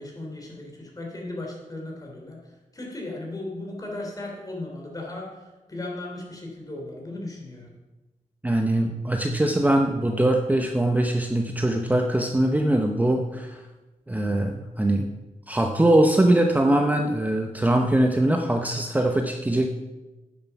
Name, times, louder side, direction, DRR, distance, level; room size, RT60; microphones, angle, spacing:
voice 1, 0.0-7.7, left 2 dB, 25° left, -1 dB, 3.2 m, -36 dB
voice 2, 8.4-13.6 14.1-15.1 15.5-19.7, right 1 dB, 10° right, 4 dB, 0.7 m, -22 dB
10.0 x 7.4 x 5.9 m, 1.1 s
wide cardioid pair, 95°, 13 cm